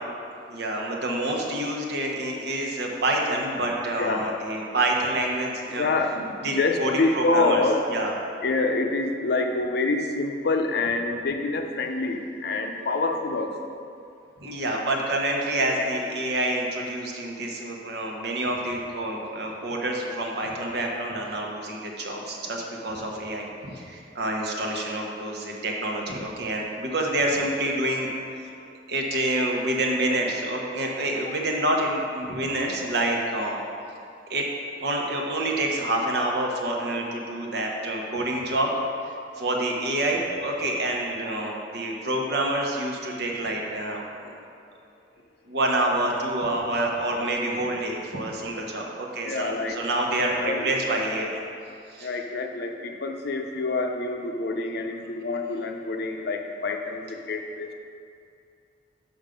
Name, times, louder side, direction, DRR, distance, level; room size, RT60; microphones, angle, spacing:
voice 1, 0.5-5.9 6.4-7.6 7.9-8.1 14.4-28.1 28.4-28.5 28.9-33.6 34.3-34.5 34.8-38.7 39.4-44.3 45.5-51.4 51.9-52.2, right 1 dB, 65° right, 0 dB, 1.1 m, -27 dB
voice 2, 5.8-7.8 8.4-13.5 49.2-49.8 50.1-50.7 52.0-57.7, left 3 dB, 60° left, 4 dB, 0.6 m, -26 dB
7.3 x 5.3 x 5.1 m, 2.5 s
head